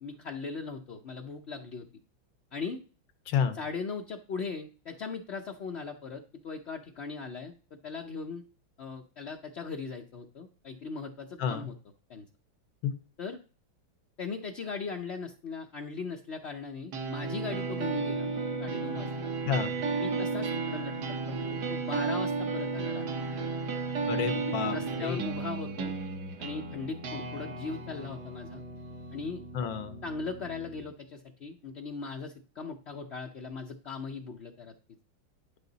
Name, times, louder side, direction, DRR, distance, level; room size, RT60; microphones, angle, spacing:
voice 1, 0.0-1.9 2.5-2.8 3.6-7.5 7.8-8.4 8.8-11.7 12.1-12.3 13.2-13.4 14.2-18.3 18.6-19.3 20.0-20.9 21.3-23.0 23.4-23.5 24.6-25.9 26.4-28.6 29.1-29.4 30.0-34.7, left 4 dB, 60° left, 2 dB, 0.6 m, -39 dB
voice 2, 3.3-3.6 11.4-11.7 12.8-12.9 19.5-19.7 24.1-25.3 29.5-30.0, left 7 dB, 85° left, 8 dB, 1.8 m, -30 dB
sound 1, 16.9-30.9, right 4 dB, 60° right, 1.7 m, -34 dB
11.0 x 5.7 x 4.0 m, 0.38 s
omnidirectional pair, 2.1 m